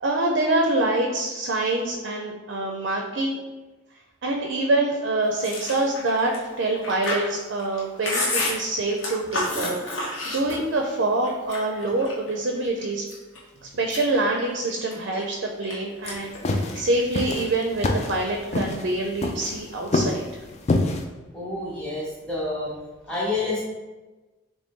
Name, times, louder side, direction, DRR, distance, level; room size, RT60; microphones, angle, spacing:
voice 1, 0.0-3.4 4.2-13.0 13.8-20.3, right 2 dB, 60° right, 1 dB, 0.4 m, -25 dB
Chewing mastication, 5.4-10.9 11.2-12.3 12.8-13.4 13.7-15.7 16.0-16.4 16.6-17.5, left 2 dB, 70° left, 1.1 m, -30 dB
sound 1, 16.0-21.0, left 2 dB, 35° left, 0.3 m, -26 dB
voice 2, 21.3-22.7 23.1-23.6, left 2 dB, 5° left, -8 dB, 0.9 m, -28 dB
4.0 x 3.0 x 3.6 m, 1.2 s
head